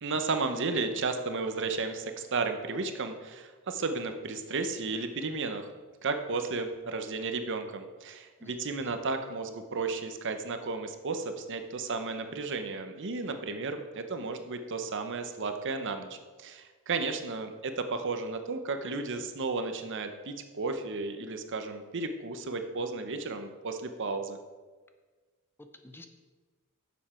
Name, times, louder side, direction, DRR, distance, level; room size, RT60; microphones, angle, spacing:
voice 1, 0.0-5.7 6.0-24.4, right 3 dB, 60° right, 7 dB, 0.8 m, -33 dB
voice 2, 8.4-8.9 25.6-26.1, left 2 dB, 10° left, 6 dB, 0.6 m, -52 dB
10.5 x 7.3 x 4.4 m, 1.4 s
head